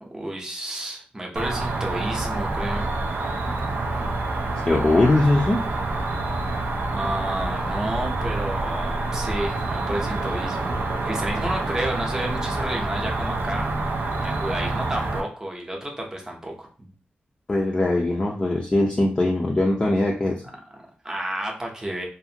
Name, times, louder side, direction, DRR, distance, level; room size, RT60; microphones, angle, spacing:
voice 1, 0.0-2.9 6.9-13.8 14.2-16.9 20.4-22.0, right 1 dB, 15° right, 0 dB, 0.7 m, -31 dB
Cricket, 1.4-15.2, right 2 dB, 80° right, 0.4 m, -27 dB
voice 2, 4.6-5.6 17.5-20.4, left 2 dB, 25° left, -2 dB, 0.4 m, -21 dB
2.5 x 2.5 x 2.7 m, 0.39 s
wide cardioid pair, 130°, 4 cm